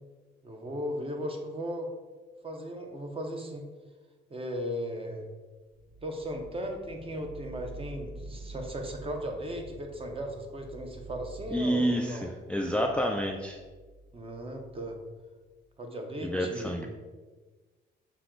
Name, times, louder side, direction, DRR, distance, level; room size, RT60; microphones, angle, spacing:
voice 1, 0.4-1.9 2.4-3.7 4.3-5.3 6.0-12.3 14.1-15.0 15.8-16.9, equal, 30° right, 3 dB, 0.8 m, -36 dB
sound 1, 5.7-15.6, right 2 dB, 75° right, 1.0 m, -48 dB
voice 2, 11.5-13.6 16.2-16.9, equal, 5° left, 2 dB, 0.3 m, -29 dB
5.9 x 2.3 x 3.8 m, 1.3 s
cardioid pair, 90°, 20 cm